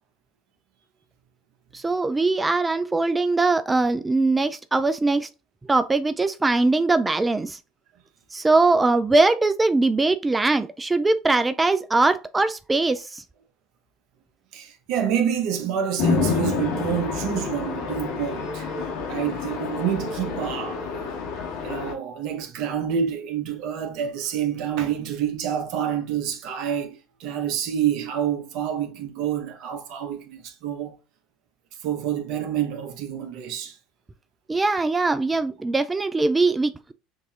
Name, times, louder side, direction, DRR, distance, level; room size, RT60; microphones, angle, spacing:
voice 1, 1.7-5.3 5.7-7.6 8.3-13.2 34.5-36.9, right 3 dB, 15° right, 0.3 m, -21 dB
voice 2, 14.5-18.7 19.1-20.8 21.6-30.9 31.8-33.8, right 9 dB, 65° right, 0.9 m, -28 dB
Chatter / Traffic noise roadway noise / Train, 16.0-21.9, left 5 dB, 75° left, 1.6 m, -28 dB
6.4 x 2.7 x 2.4 m
hypercardioid pair, 80°, 0 cm